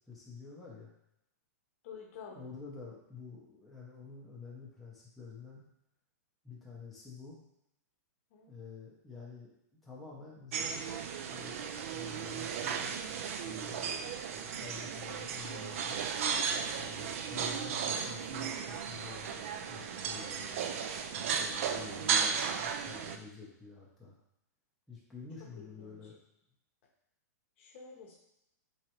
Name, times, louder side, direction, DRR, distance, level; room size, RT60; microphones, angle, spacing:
voice 1, 0.1-0.9 2.3-5.6 6.4-7.4 8.5-13.0 13.4-16.0 16.7-20.6 21.3-24.2 24.9-26.2, left 5 dB, ahead, -7 dB, 0.6 m, -49 dB
voice 2, 1.8-2.4 8.3-8.5 21.7-22.1 25.6-26.0 27.6-28.2, left 5 dB, 45° left, 0 dB, 0.8 m, -49 dB
sound 1, 10.5-23.2, right 7 dB, 50° right, 0.3 m, -35 dB
3.6 x 3.2 x 2.9 m, 0.81 s
hypercardioid pair, 160°, 9 cm